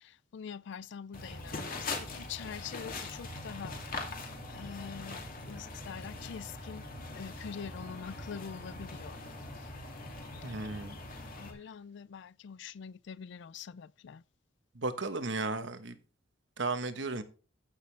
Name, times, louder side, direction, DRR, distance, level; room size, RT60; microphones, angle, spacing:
voice 1, 0.3-3.7 4.5-5.2 5.5-6.8 7.1-9.2 11.4-14.2, left 7 dB, 65° left, 0.4 m, -44 dB
sound 1, 1.1-11.5, left 2 dB, 50° left, 2.5 m, -42 dB
voice 2, 10.4-11.0 14.7-16.0 16.6-17.2, right 3 dB, 70° right, 1.2 m, -34 dB
14.5 x 6.7 x 3.3 m
head